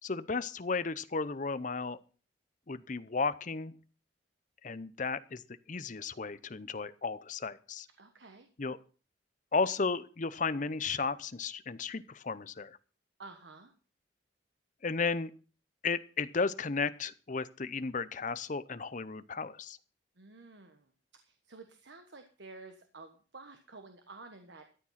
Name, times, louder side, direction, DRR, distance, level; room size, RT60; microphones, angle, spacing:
voice 1, 0.0-2.0 2.7-3.7 4.6-5.4 5.7-7.9 8.6-8.8 9.5-12.8 14.8-15.3 15.8-19.8, left 4 dB, 40° left, 15 dB, 0.7 m, -34 dB
voice 2, 8.0-8.5 13.2-13.7 20.2-24.7, right 3 dB, 65° right, 6 dB, 1.4 m, -51 dB
13.5 x 8.9 x 5.8 m, 0.39 s
head